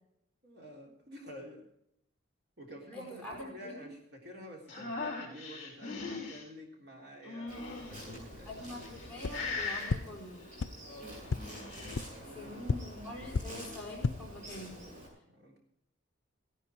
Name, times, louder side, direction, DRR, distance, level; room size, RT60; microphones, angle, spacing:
voice 1, 0.4-1.6 2.6-8.7 10.8-11.2 11.7-12.6 15.2-15.6, equal, 55° right, 0 dB, 3.5 m, -49 dB
voice 2, 2.9-3.9 8.4-10.5 12.3-15.0, left 1 dB, 5° left, -4 dB, 4.3 m, -45 dB
sound 1, 4.7-6.4 7.2-8.1 8.7-9.1 9.3-9.9 11.3-12.0, left 3 dB, 35° left, 5.6 m, -39 dB
Insect, 7.5-15.1, equal, 40° right, 6.6 m, -48 dB
sound 2, 9.2-9.3 9.9-10.0 10.6-10.7 11.3-11.4 11.9-12.0 12.6-12.7 13.3-13.4 13.9-14.1, left 4 dB, 75° left, 0.5 m, -30 dB
17.0 x 11.0 x 4.6 m, 0.76 s
head